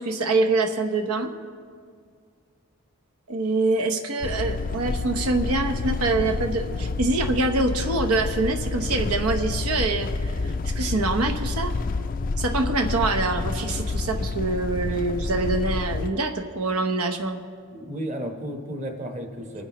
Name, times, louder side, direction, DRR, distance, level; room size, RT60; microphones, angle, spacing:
voice 1, 0.0-1.3 3.3-11.8 12.4-17.4, right 3 dB, 85° right, 5 dB, 1.0 m, -25 dB
sound 1, 4.2-16.1, left 3 dB, 40° left, 0.3 m, -29 dB
voice 2, 17.7-19.6, equal, 30° right, 3 dB, 1.2 m, -33 dB
28.0 x 10.0 x 3.1 m, 2.1 s
head